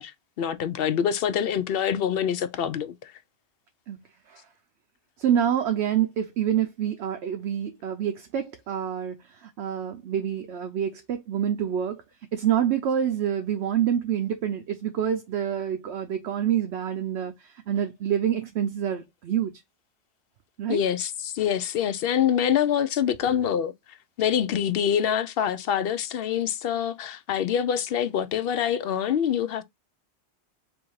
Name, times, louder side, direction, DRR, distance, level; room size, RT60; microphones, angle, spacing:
voice 1, 0.0-3.1 20.7-23.7 24.2-29.6, left 9 dB, 65° left, 0.7 m, -25 dB
voice 2, 5.2-12.0 12.3-19.6 20.6-20.8 23.2-23.3, right 9 dB, 75° right, 0.9 m, -27 dB
3.5 x 2.5 x 4.5 m
omnidirectional pair, 1.2 m